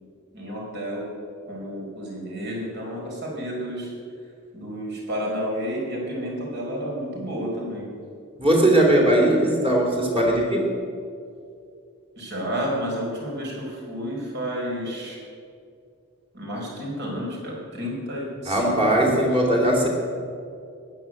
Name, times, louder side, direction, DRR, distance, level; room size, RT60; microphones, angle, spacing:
voice 1, 0.3-1.1 1.4-3.9 4.5-7.9 12.2-15.2 16.3-19.4, equal, 50° right, -3 dB, 4.7 m, -31 dB
voice 2, 8.4-10.7 18.5-19.9, right 1 dB, 25° right, -1 dB, 3.0 m, -19 dB
14.5 x 10.5 x 7.7 m, 2.4 s
head